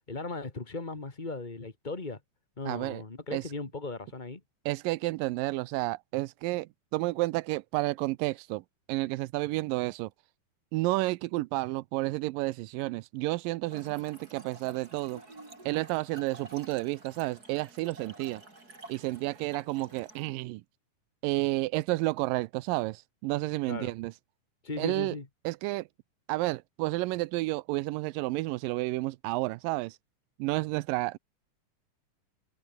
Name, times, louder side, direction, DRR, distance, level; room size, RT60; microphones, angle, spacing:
voice 1, 0.1-2.2 2.6-4.4 23.7-23.9 24.6-25.2, left 3 dB, 20° left, 1.3 m, -37 dB
voice 2, 2.7-3.0 3.3-3.5 4.7-8.6 8.9-10.1 10.7-15.2 15.7-18.4 18.9-20.6 21.2-24.1 24.8-25.2 25.4-25.9 26.3-30.0 30.4-31.2, right 20 dB, 90° right, 2.3 m, -31 dB
Trickle dribble / Fill (with liquid), 13.6-20.3, right 2 dB, 25° right, 6.0 m, -50 dB
omnidirectional pair, 3.9 m